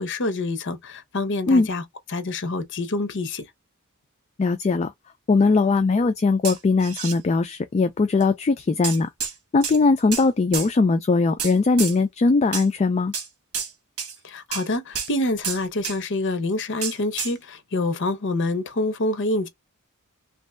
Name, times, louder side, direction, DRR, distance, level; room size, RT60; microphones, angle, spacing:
voice 1, 0.0-1.8 2.1-3.4 14.2-19.5, left 2 dB, 55° left, 0.7 m, -26 dB
voice 2, 4.4-4.9 5.3-9.1 9.5-13.1, left 3 dB, 30° left, 0.3 m, -20 dB
sound 1, 6.4-7.2 8.2-8.3 8.8-9.3 9.6-10.2 10.5-10.7 11.4-12.0 12.5-12.7 13.1-13.3 13.5-13.7 14.0-14.2 14.5-14.7 14.9-15.1 15.4-16.0 16.8-17.3, right 6 dB, 80° right, 1.1 m, -29 dB
3.0 x 2.7 x 3.3 m
head